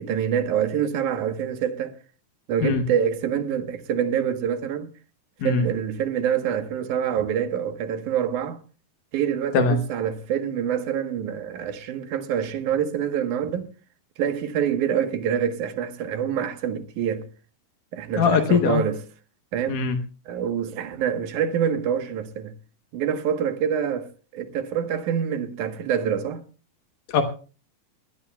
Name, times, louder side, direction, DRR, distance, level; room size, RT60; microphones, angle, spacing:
voice 1, 0.0-2.0 2.5-4.9 5.4-8.6 9.1-13.7 14.2-17.3 17.9-19.0 19.5-19.8 20.3-22.5 22.9-26.4, right 8 dB, 75° right, 2.6 m, -26 dB
voice 2, 18.2-18.8 19.7-20.0 27.1-27.2, left 5 dB, 75° left, 2.6 m, -20 dB
23.0 x 17.0 x 2.3 m
omnidirectional pair, 3.7 m